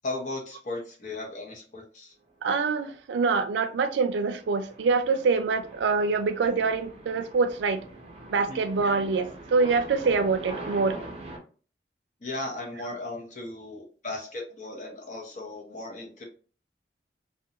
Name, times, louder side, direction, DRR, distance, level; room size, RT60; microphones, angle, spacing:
voice 1, 0.0-2.1 8.5-8.6 12.2-16.2, left 2 dB, 45° left, 0.7 m, -36 dB
voice 2, 2.4-7.8 8.3-11.0, right 4 dB, 85° right, 0.3 m, -25 dB
sound 1, 3.6-11.4, right 2 dB, 35° right, 0.6 m, -43 dB
2.4 x 2.2 x 2.8 m
head